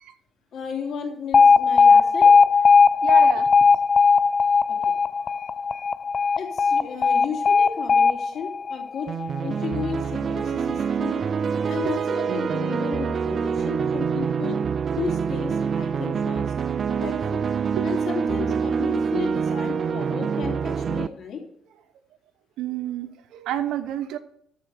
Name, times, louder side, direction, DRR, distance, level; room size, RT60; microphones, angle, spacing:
voice 1, 0.5-2.3 4.7-4.9 6.4-9.1 9.4-11.2 11.7-14.6 15.0-16.5 17.0-17.4 17.8-21.4, left 6 dB, 60° left, 1 dB, 3.2 m, -34 dB
Alarm, 1.3-9.4, left 5 dB, 35° left, 0.4 m, -17 dB
voice 2, 3.0-3.5 11.8-12.0 17.8-17.9 22.6-24.2, right 11 dB, 80° right, 9 dB, 1.0 m, -29 dB
sound 1, 9.1-21.1, right 6 dB, 45° right, 0.4 m, -26 dB
13.5 x 4.5 x 6.7 m, 0.68 s
cardioid pair, 90°, 0 cm